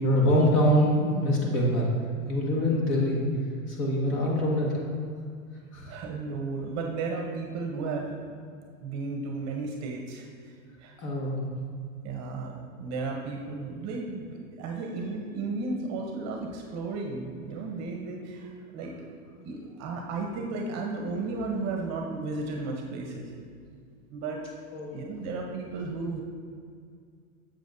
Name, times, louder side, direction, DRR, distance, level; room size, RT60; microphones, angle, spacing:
voice 1, 0.0-1.9 2.3-3.3 3.7-4.8 5.7-6.0 11.0-11.5 24.7-25.0, equal, 35° left, -2 dB, 1.7 m, -24 dB
voice 2, 5.9-8.2 8.8-11.0 12.0-18.9 19.4-23.3 24.1-24.4 24.9-26.2, right 3 dB, 40° right, 2 dB, 0.9 m, -34 dB
7.4 x 7.0 x 2.6 m, 2.2 s
hypercardioid pair, 115°, 42 cm